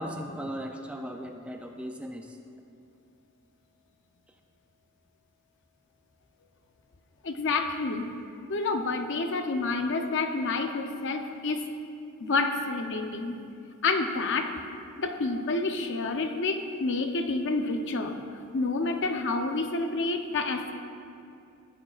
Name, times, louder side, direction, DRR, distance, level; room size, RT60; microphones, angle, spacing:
voice 1, 0.0-2.4, equal, 5° right, 3 dB, 0.4 m, -37 dB
voice 2, 7.2-8.1 8.5-11.7 12.2-13.4 13.8-14.5 15.0-18.2 18.5-20.7, left 3 dB, 55° left, 5 dB, 0.6 m, -28 dB
13.5 x 8.7 x 2.4 m, 2.6 s
head